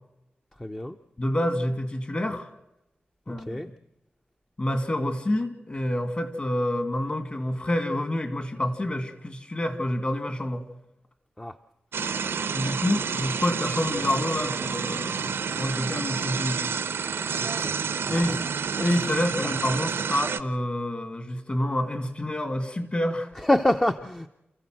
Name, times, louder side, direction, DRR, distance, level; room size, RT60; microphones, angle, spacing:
voice 1, 0.6-1.0 3.5-3.7 11.4-11.5 17.4-17.7 18.3-18.4 23.4-24.3, left 1 dB, 15° left, 6 dB, 0.8 m, -25 dB
voice 2, 1.2-2.5 3.3-3.7 4.6-10.6 12.5-15.3 15.6-16.7 18.1-18.4 18.8-23.3, left 1 dB, 30° left, 9 dB, 2.2 m, -28 dB
sound 1, 11.9-20.4, right 6 dB, 90° right, 0.9 m, -29 dB
28.5 x 15.0 x 7.7 m, 0.92 s
wide cardioid pair, 120°, 4 cm